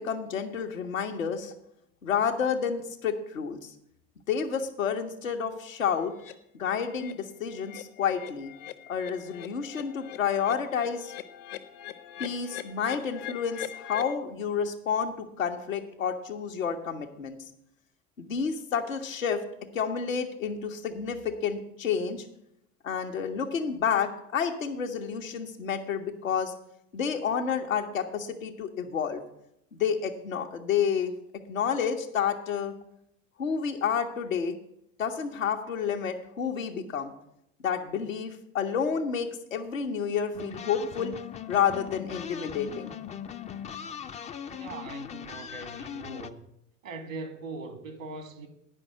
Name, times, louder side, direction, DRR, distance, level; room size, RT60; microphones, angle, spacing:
voice 1, 0.0-1.5 2.0-3.7 4.3-6.1 6.6-8.5 8.9-11.1 12.2-17.4 18.2-19.4 19.7-22.3 22.8-26.5 26.9-29.2 29.7-31.1 31.5-32.7 33.4-34.6 35.0-37.1 37.6-41.1 41.5-42.9, left 7 dB, 80° left, 1.2 m, -30 dB
sound 1, 6.2-6.3 6.8-7.1 7.5-14.2, left 12 dB, 55° left, 0.9 m, -42 dB
sound 2, 40.3-46.3, left 8 dB, 20° left, 0.4 m, -39 dB
voice 2, 44.5-46.5 46.8-48.5, right 3 dB, 80° right, 1.5 m, -41 dB
9.8 x 5.5 x 8.0 m
figure-of-eight pair, 75°, 39 cm